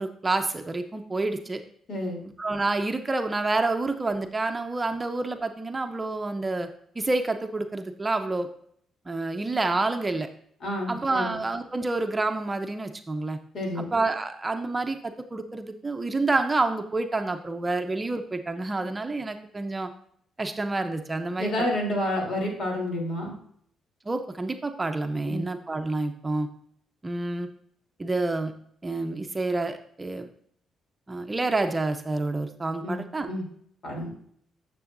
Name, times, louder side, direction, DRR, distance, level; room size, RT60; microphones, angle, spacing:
voice 1, 0.0-1.6 2.4-6.7 7.0-8.5 9.1-10.3 10.9-13.4 13.9-19.9 20.4-21.5 24.1-26.5 27.0-27.5 28.0-28.5 28.8-30.3 31.1-33.3, right 2 dB, 20° right, 6 dB, 0.7 m, -28 dB
voice 2, 1.9-2.2 10.6-11.4 13.5-13.9 21.4-23.3 25.2-25.4 32.8-33.4 33.8-34.1, left 1 dB, 60° left, 0 dB, 3.2 m, -29 dB
9.8 x 6.8 x 2.6 m, 0.65 s
cardioid pair, 90°, 0 cm